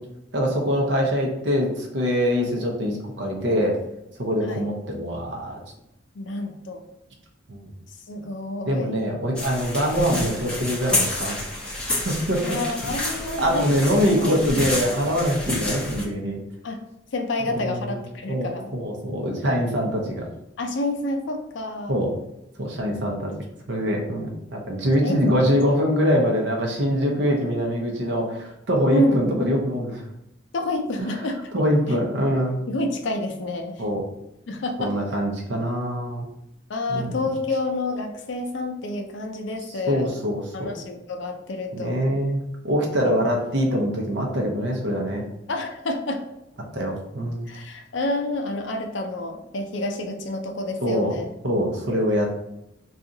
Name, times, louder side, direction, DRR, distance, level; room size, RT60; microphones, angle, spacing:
voice 1, 0.3-3.8 4.2-5.6 7.5-7.7 8.7-11.7 12.0-12.4 13.4-16.4 17.5-18.0 18.3-20.3 21.9-22.1 22.6-23.3 23.7-30.0 31.5-32.6 33.8-34.0 34.8-36.3 36.9-37.2 39.9-40.7 41.7-45.3 46.7-47.5 50.8-51.2 51.4-52.3, equal, 60° right, 0 dB, 0.7 m, -24 dB
voice 2, 6.1-6.8 8.1-9.0 12.4-13.7 14.2-14.3 16.6-16.8 17.1-18.7 20.6-22.0 25.0-25.4 28.9-29.2 30.5-31.4 32.7-33.8 34.5-34.9 36.7-40.2 40.5-42.2 43.0-43.2 45.5-46.2 47.5-51.3, left 2 dB, 65° left, 4 dB, 0.5 m, -29 dB
sound 1, 9.4-16.0, left 1 dB, 5° left, 0.6 m, -29 dB
2.7 x 2.4 x 3.8 m, 0.87 s
head